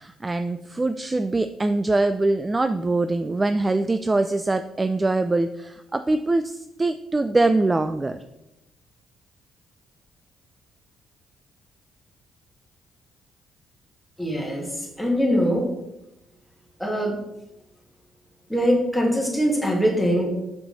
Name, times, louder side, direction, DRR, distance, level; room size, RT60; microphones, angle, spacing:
voice 1, 0.0-8.2, right 2 dB, 20° right, 9 dB, 0.3 m, -23 dB
voice 2, 14.2-15.7 16.8-17.2 18.5-20.3, equal, ahead, -1 dB, 1.9 m, -22 dB
5.6 x 5.6 x 4.0 m, 0.90 s
cardioid pair, 90°, 0 cm